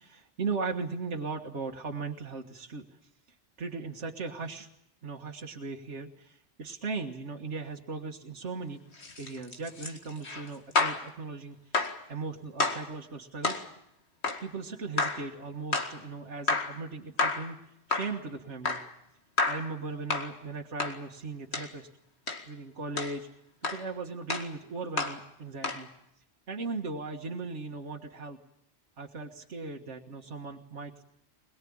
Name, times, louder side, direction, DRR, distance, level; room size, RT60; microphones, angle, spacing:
voice 1, 0.0-2.9 3.6-4.7 5.0-8.8 9.2-11.6 12.1-13.6 14.4-17.6 17.9-18.8 19.5-21.9 22.5-23.3 23.7-25.9 26.5-28.4 29.0-31.0, right 4 dB, 80° right, 2 dB, 2.0 m, -38 dB
sound 1, 8.9-11.1 11.7-12.0 12.6-12.9 13.4-13.7 14.2-14.5 15.0-15.3 15.7-16.0 16.5-16.8 17.2-17.5 17.9-18.2 18.6-18.9 19.4-19.7 20.1-20.3 20.8-21.0 21.5-21.7 22.3-22.4 23.0-23.2 23.6-23.9 24.3-24.5 25.0-25.2 25.6-25.8, left 3 dB, 70° left, 2.4 m, -30 dB
22.0 x 22.0 x 8.7 m, 0.76 s
omnidirectional pair, 1.2 m